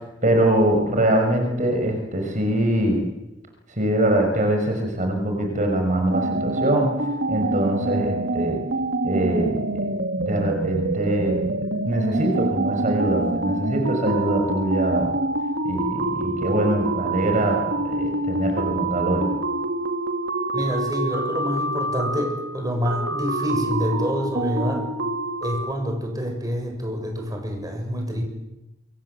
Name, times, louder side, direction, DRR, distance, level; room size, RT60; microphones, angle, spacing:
voice 1, 0.2-3.0 3.7-6.9 7.3-8.6 9.0-9.9 10.2-15.1 15.6-19.3, right 1 dB, 40° right, 3 dB, 5.9 m, -23 dB
sound 1, 6.1-25.7, right 2 dB, 70° right, 2.2 m, -26 dB
voice 2, 20.5-24.9 25.4-28.2, equal, 20° right, 3 dB, 6.9 m, -27 dB
28.0 x 25.0 x 8.0 m, 0.96 s
head